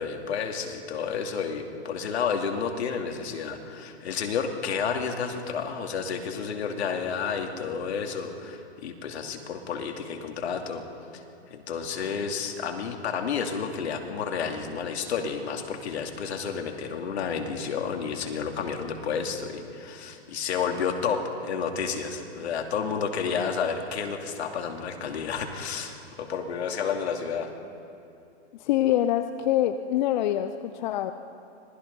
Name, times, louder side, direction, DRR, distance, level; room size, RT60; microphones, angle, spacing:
voice 1, 0.0-10.8 11.1-11.2 11.5-27.5, left 6 dB, 70° left, 3 dB, 2.9 m, -31 dB
voice 2, 28.6-31.1, left 12 dB, 40° left, 9 dB, 0.7 m, -25 dB
25.5 x 20.0 x 5.4 m, 2.7 s
hypercardioid pair, 145°, 34 cm